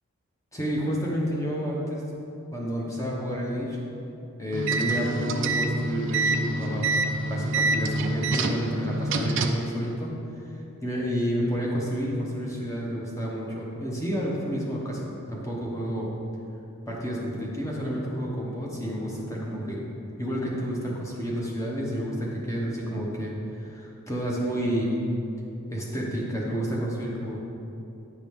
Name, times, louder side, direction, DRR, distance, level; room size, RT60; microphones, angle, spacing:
voice 1, 0.5-2.1 2.5-3.8 4.4-6.9 7.3-16.1 16.9-19.9 20.2-25.0 25.7-27.4, equal, 15° left, -4 dB, 0.9 m, -30 dB
sound 1, 4.5-9.7, right 2 dB, 55° right, 0.4 m, -26 dB
9.2 x 4.8 x 3.5 m, 2.8 s
head